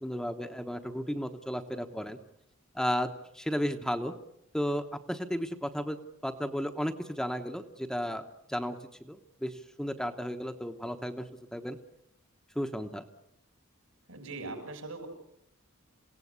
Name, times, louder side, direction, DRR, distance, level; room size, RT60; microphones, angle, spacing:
voice 1, 0.0-2.2 2.7-3.1 3.3-4.1 4.5-8.8 9.0-11.8 12.5-13.0, equal, 5° left, 6 dB, 1.0 m, -34 dB
voice 2, 14.1-15.1, right 3 dB, 80° right, 5 dB, 6.7 m, -40 dB
28.0 x 17.0 x 8.3 m, 0.79 s
head